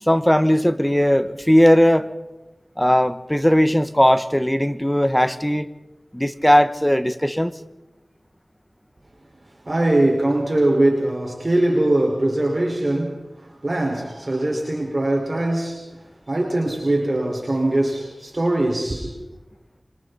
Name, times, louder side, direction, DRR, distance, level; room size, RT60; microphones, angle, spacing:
voice 1, 0.0-2.1 2.8-5.7 6.1-7.5, equal, 5° left, 1.3 m, -18 dB
voice 2, 9.6-15.8 16.3-19.1, right 1 dB, 45° right, 4.9 m, -21 dB
26.5 x 26.0 x 4.2 m
wide cardioid pair, 50°, 0 cm